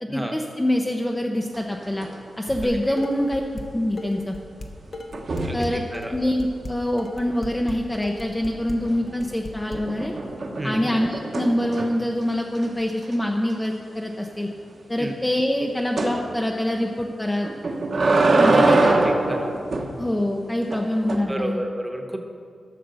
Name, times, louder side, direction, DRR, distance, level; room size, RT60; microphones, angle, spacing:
voice 1, 0.0-2.1 2.4-3.4 3.7-4.4 5.5-5.8 6.1-10.1 10.6-14.5 14.9-17.5 18.4-19.0 20.0-21.6, left 1 dB, 10° left, 1 dB, 0.6 m, -25 dB
sound 1, 1.5-2.2 2.4-2.8 5.1-5.7 8.8-9.3 9.7-12.1 12.6-12.7 13.0-13.1 13.5-13.6 16.0-16.2 17.4-19.9 20.7-21.2, right 2 dB, 50° right, 1.1 m, -23 dB
Dishes pots and pans, 2.6-3.7 4.0-9.8, left 2 dB, 40° left, 1.0 m, -36 dB
voice 2, 5.4-6.1 10.6-10.9 15.0-15.1 19.0-19.5 21.3-22.2, right 1 dB, 10° right, 3 dB, 1.1 m, -31 dB
11.5 x 6.7 x 6.8 m, 2.2 s
wide cardioid pair, 145°, 0 cm